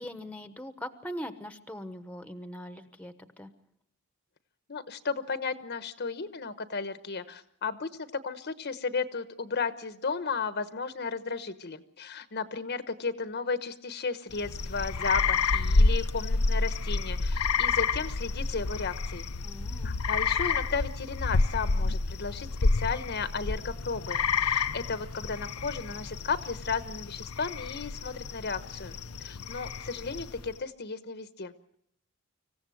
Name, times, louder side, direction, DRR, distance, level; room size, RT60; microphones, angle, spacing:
voice 1, 0.0-3.5 19.4-19.9, equal, 5° left, 9 dB, 1.1 m, -41 dB
voice 2, 4.7-7.9 8.2-19.2 19.8-31.5, left 4 dB, 50° left, 11 dB, 1.1 m, -34 dB
sound 1, 14.3-30.5, left 4 dB, 80° left, 0.8 m, -29 dB
26.0 x 15.5 x 7.8 m, 0.71 s
head